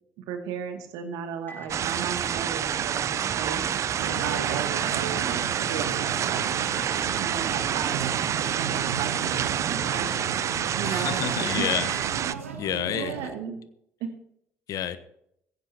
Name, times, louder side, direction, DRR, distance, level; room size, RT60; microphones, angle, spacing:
voice 1, 0.3-3.7 4.0-10.3 10.7-11.7 12.9-13.6 14.0-14.1, right 7 dB, 60° right, 5 dB, 2.3 m, -35 dB
Microwave oven, 1.5-12.2, left 2 dB, 30° left, 5.3 m, -47 dB
sound 1, 1.7-12.3, right 9 dB, 45° right, 0.6 m, -28 dB
sound 2, 4.0-13.3, right 6 dB, 80° right, 1.1 m, -37 dB
voice 2, 10.8-11.9 12.5-13.3 14.7-15.0, left 10 dB, 55° left, 14 dB, 1.1 m, -29 dB
16.5 x 16.0 x 2.9 m, 0.75 s
figure-of-eight pair, 50°, 7 cm